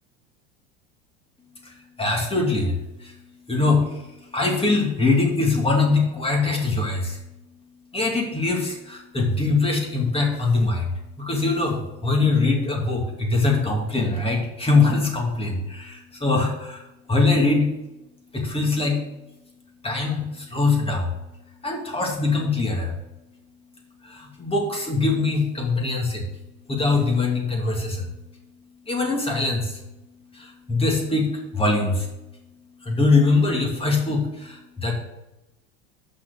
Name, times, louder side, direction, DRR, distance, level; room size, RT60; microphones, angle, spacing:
voice 1, 2.0-3.1 3.5-4.0 4.3-7.2 7.9-10.9 11.2-16.8 17.1-17.7 18.3-19.0 19.8-21.1 21.6-22.9 24.0-26.3 26.7-28.1 28.9-29.8 30.3-32.1 32.9-35.0, left 3 dB, 15° left, 0 dB, 2.5 m, -22 dB
6.4 x 5.8 x 6.9 m, 0.98 s
hypercardioid pair, 85°, 32 cm